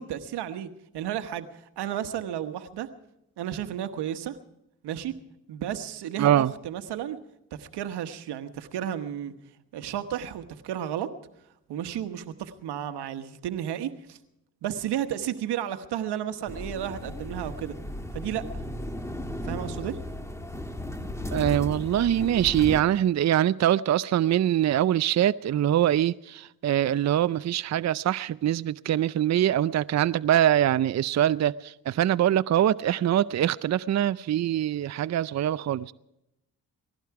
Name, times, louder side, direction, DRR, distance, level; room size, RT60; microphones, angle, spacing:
voice 1, 0.0-2.9 3.4-4.4 4.8-5.1 5.5-7.2 7.5-9.3 9.7-11.1 11.7-14.2 14.6-17.8 18.1-18.6 19.4-20.0, right 10 dB, 90° right, 1.2 m, -33 dB
voice 2, 6.2-6.5 21.3-35.9, right 11 dB, 45° right, 0.5 m, -23 dB
sound 1, 16.5-22.8, left 1 dB, 5° left, 1.7 m, -35 dB
19.5 x 15.5 x 4.8 m
cardioid pair, 70°, 39 cm